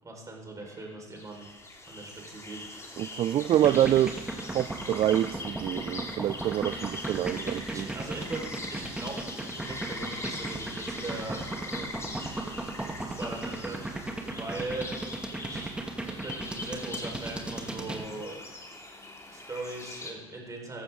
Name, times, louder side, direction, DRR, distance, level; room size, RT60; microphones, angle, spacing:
voice 1, 0.0-1.4 1.9-3.0 7.1-7.3 7.7-12.2 13.2-14.9 15.4-18.4 19.3-20.8, right 2 dB, 25° right, 4.7 m, -40 dB
Ambient Forest Soundscape, 0.7-20.1, left 2 dB, 20° left, 2.8 m, -42 dB
voice 2, 3.0-7.9, right 12 dB, 45° right, 0.4 m, -26 dB
sound 1, 3.5-18.0, right 2 dB, 5° right, 2.1 m, -35 dB
14.5 x 12.5 x 3.8 m
hypercardioid pair, 65°, 13 cm